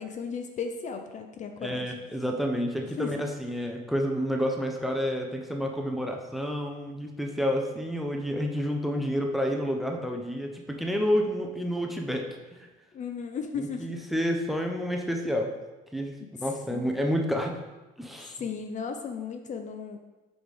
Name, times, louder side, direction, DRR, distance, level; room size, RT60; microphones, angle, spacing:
voice 1, 0.0-1.9 3.0-3.2 12.9-13.9 16.2-16.3 16.7-16.9 18.4-20.0, left 5 dB, 45° left, 6 dB, 0.5 m, -35 dB
voice 2, 1.6-12.3 12.6-12.7 13.6-15.5 15.9-17.6 18.0-18.4, equal, ahead, 2 dB, 0.7 m, -29 dB
4.8 x 3.9 x 5.1 m, 1.1 s
cardioid pair, 110°, 17 cm